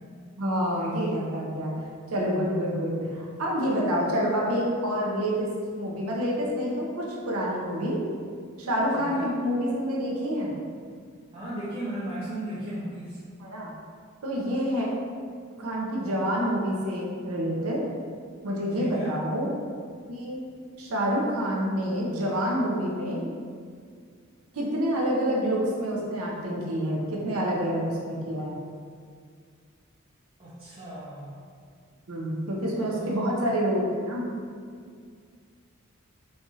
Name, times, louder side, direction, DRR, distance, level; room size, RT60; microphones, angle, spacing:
voice 1, 0.4-1.7 2.1-5.5 5.7-8.0 8.6-10.5 13.4-13.7 14.2-14.9 15.6-17.8 18.4-19.5 20.1-20.5 20.8-23.2 24.5-28.6 32.1-34.3, equal, 85° right, -3 dB, 0.7 m, -27 dB
voice 2, 8.9-9.3 11.3-13.2 18.8-19.2 30.4-31.4 32.7-33.4, right 1 dB, 25° right, -9 dB, 0.5 m, -36 dB
4.5 x 2.4 x 2.7 m, 2.1 s
head